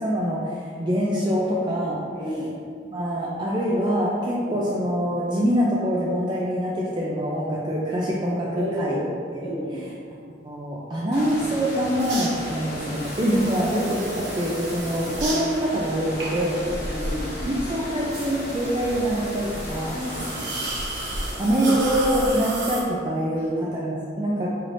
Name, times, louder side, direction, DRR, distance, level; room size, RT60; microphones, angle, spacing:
voice 1, 0.0-2.0 2.9-9.1 9.3-9.9 10.4-16.6 17.5-19.9 21.4-24.5, equal, 25° right, -5 dB, 0.4 m, -25 dB
voice 2, 2.1-2.5 4.4-4.7 8.5-9.1 9.4-9.8 14.9-15.2 16.9-17.5 19.9-20.6 21.1-21.7, equal, 10° left, -10 dB, 1.3 m, -33 dB
sound 1, 11.1-22.8, equal, 65° left, 1.2 m, -34 dB
sound 2, 12.0-22.8, right 2 dB, 75° right, 0.9 m, -35 dB
5.7 x 3.3 x 2.5 m, 2.2 s
head